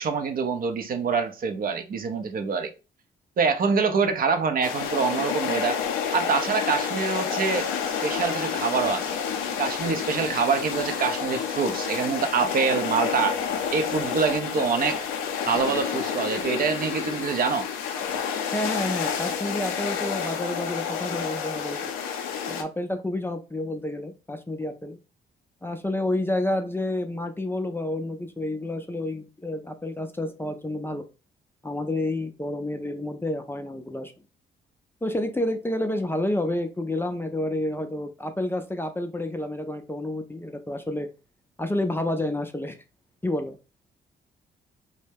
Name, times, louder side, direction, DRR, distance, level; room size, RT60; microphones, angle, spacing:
voice 1, 0.0-2.7 3.4-5.8 6.1-7.7 8.0-9.1 9.6-13.4 13.7-15.0 15.4-17.7, right 5 dB, 45° right, 0.5 m, -25 dB
sound 1, 4.6-22.6, left 7 dB, 85° left, 0.5 m, -29 dB
voice 2, 18.5-21.9 22.5-25.0 25.6-31.0 31.6-34.1 35.0-41.1 41.6-42.7 43.2-43.6, left 1 dB, 10° left, 0.4 m, -29 dB
2.2 x 2.0 x 3.2 m
supercardioid pair, 60°, 20 cm